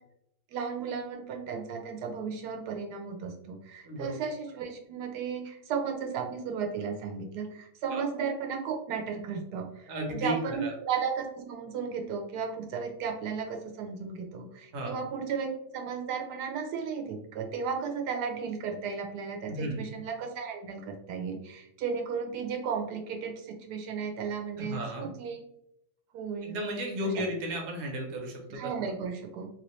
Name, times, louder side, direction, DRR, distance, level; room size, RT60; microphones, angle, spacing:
voice 1, 0.5-25.4 26.1-26.6 28.5-29.5, right 6 dB, 85° right, 3 dB, 1.1 m, -34 dB
voice 2, 9.9-10.7 14.7-14.9 19.5-19.8 24.6-25.1 26.4-28.9, equal, 50° right, 1 dB, 1.0 m, -34 dB
3.0 x 2.9 x 3.0 m, 0.78 s
omnidirectional pair, 1.7 m